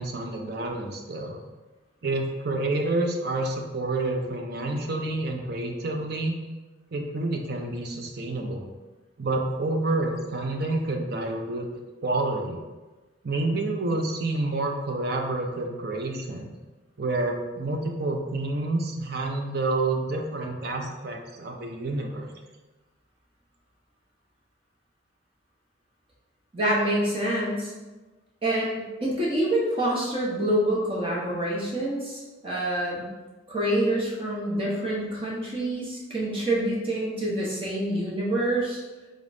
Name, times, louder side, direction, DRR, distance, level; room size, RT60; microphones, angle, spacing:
voice 1, 0.0-1.4 2.0-6.3 6.9-8.7 9.2-11.7 12.0-12.6 13.2-16.5 17.0-22.3, right 2 dB, 50° right, 3 dB, 0.6 m, -28 dB
voice 2, 26.5-27.7 28.4-33.1 33.5-38.8, right 1 dB, 25° right, -5 dB, 1.0 m, -26 dB
5.0 x 3.9 x 2.6 m, 1.2 s
head